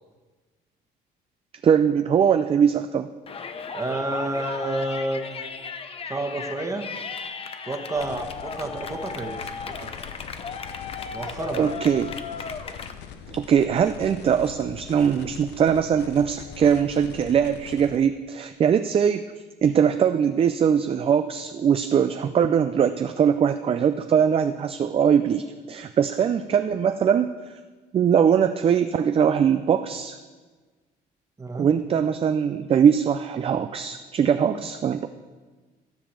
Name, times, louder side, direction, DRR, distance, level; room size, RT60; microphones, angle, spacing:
voice 1, 1.6-3.1 11.5-12.1 13.3-19.2 19.6-27.3 27.9-30.2 31.5-35.1, right 7 dB, 35° right, 9 dB, 0.4 m, -21 dB
Yell, 3.3-12.9, left 5 dB, 35° left, 0.7 m, -36 dB
voice 2, 3.7-5.5 6.1-6.9 7.6-9.5 9.8-9.9 11.1-11.9 31.4-31.7, right 2 dB, 20° right, 4 dB, 1.3 m, -30 dB
sound 1, 8.0-18.0, left 8 dB, 85° left, 0.8 m, -42 dB
13.5 x 5.1 x 7.4 m, 1.4 s
cardioid pair, 110°, 17 cm